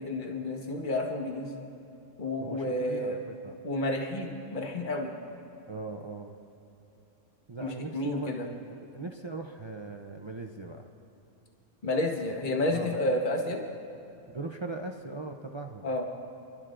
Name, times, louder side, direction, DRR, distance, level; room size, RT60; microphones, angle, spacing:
voice 1, 0.0-1.6 2.2-3.2 3.6-5.1 7.6-8.5 11.8-13.6 15.8-16.1, left 1 dB, 40° left, 2 dB, 1.4 m, -30 dB
voice 2, 2.4-3.2 3.4-3.6 5.7-6.4 7.5-10.9 12.7-13.2 14.3-15.9, right 3 dB, 35° right, 2 dB, 0.4 m, -40 dB
29.5 x 12.5 x 2.5 m, 2.9 s
omnidirectional pair, 1.3 m